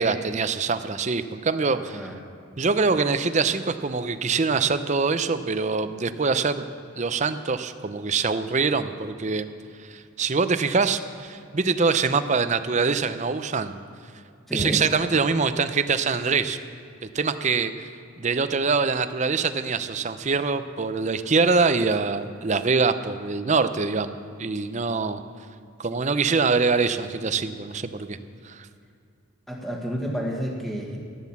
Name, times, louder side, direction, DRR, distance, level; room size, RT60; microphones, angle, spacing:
voice 1, 0.0-2.1 2.6-6.6 7.0-9.5 9.9-13.8 14.5-16.6 17.1-17.9 18.2-25.2 25.8-28.2 28.4-28.7, right 4 dB, 35° right, 11 dB, 0.6 m, -24 dB
voice 2, 1.7-2.2 14.5-14.8 29.5-31.0, equal, ahead, -1 dB, 1.4 m, -30 dB
15.0 x 10.5 x 7.2 m, 2.5 s
head